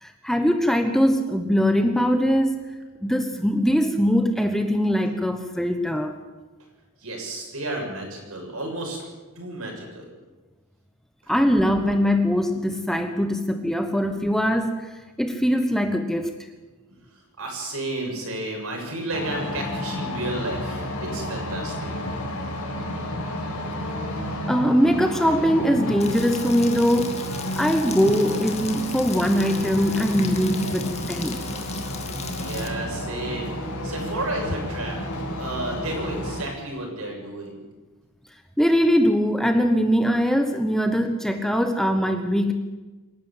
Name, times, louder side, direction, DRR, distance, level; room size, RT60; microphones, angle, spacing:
voice 1, 0.0-2.7 3.0-6.1 11.3-14.9 15.2-16.3 24.5-27.3 27.6-31.4 38.6-42.5, equal, ahead, 6 dB, 1.1 m, -22 dB
voice 2, 7.0-9.0 9.4-10.1 11.2-11.4 16.9-17.0 17.4-21.9 31.6-31.7 32.3-35.0 35.4-37.6, right 1 dB, 70° right, 1 dB, 7.1 m, -32 dB
sound 1, 19.1-36.4, left 1 dB, 90° left, 5.3 m, -31 dB
Rain, 26.0-32.7, left 6 dB, 30° left, 2.2 m, -38 dB
26.5 x 11.5 x 8.9 m, 1.2 s
head